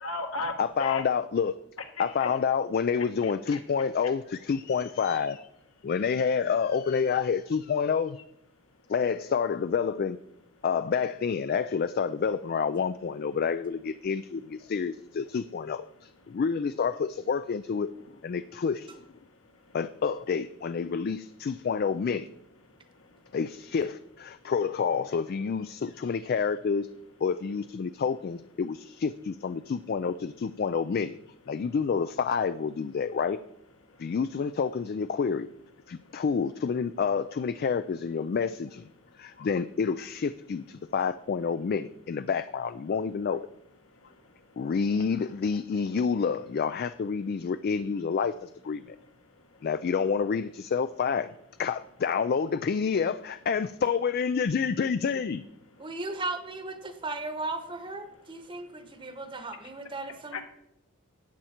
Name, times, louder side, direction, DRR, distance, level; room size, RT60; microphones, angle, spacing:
voice 1, 0.0-0.5 0.8-1.0 2.2-2.3 3.2-3.3 60.3-60.4, left 3 dB, 75° left, 4 dB, 1.6 m, -32 dB
voice 2, 0.6-1.6 2.0-5.4 5.8-8.2 8.9-10.2 10.6-17.9 18.2-19.0 19.7-22.3 23.3-26.9 27.2-31.2 31.5-33.4 34.0-35.5 35.9-38.8 39.2-43.5 44.6-49.0 49.6-51.3 51.6-55.4, left 6 dB, 45° left, 12 dB, 0.3 m, -28 dB
voice 3, 55.8-60.4, right 2 dB, 25° right, 8 dB, 1.0 m, -36 dB
13.5 x 9.0 x 4.4 m, 0.80 s
head